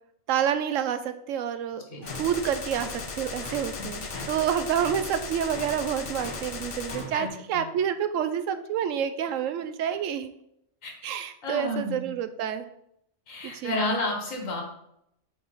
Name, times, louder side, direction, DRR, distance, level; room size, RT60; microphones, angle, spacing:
voice 1, 0.3-10.3 11.0-12.6 13.5-13.7, right 9 dB, 80° right, 11 dB, 1.0 m, -28 dB
sound 1, 2.0-7.3, left 1 dB, 65° left, 3.0 m, -42 dB
Gunshot gunfire, 2.1-7.1, left 4 dB, 50° left, 0.4 m, -37 dB
voice 2, 3.8-4.3 7.1-7.7 10.8-10.9 11.4-12.1 13.3-14.6, left 2 dB, 90° left, 1 dB, 1.9 m, -31 dB
8.4 x 3.8 x 4.0 m, 0.76 s
omnidirectional pair, 1.3 m